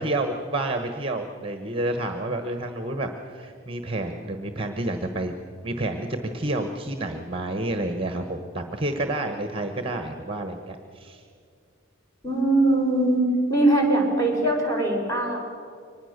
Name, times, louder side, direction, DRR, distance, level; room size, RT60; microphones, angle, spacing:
voice 1, 0.0-5.3 5.6-6.1 6.3-11.2, right 2 dB, 25° right, 6 dB, 1.1 m, -29 dB
voice 2, 12.2-15.4, right 1 dB, 15° left, -2 dB, 4.7 m, -21 dB
24.0 x 20.0 x 6.6 m, 2.3 s
head